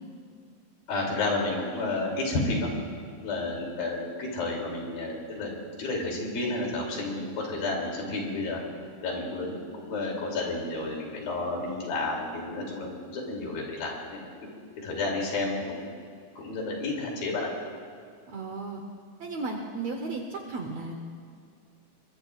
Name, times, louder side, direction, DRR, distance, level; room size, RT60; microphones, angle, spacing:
voice 1, 0.9-2.7 3.2-5.5 5.8-8.6 9.0-14.3 14.8-15.9 16.4-17.5, left 2 dB, 75° left, -1 dB, 4.6 m, -31 dB
voice 2, 18.3-18.8 19.2-21.0, right 3 dB, 65° right, 2 dB, 1.7 m, -34 dB
22.5 x 22.5 x 2.4 m, 2.3 s
omnidirectional pair, 4.2 m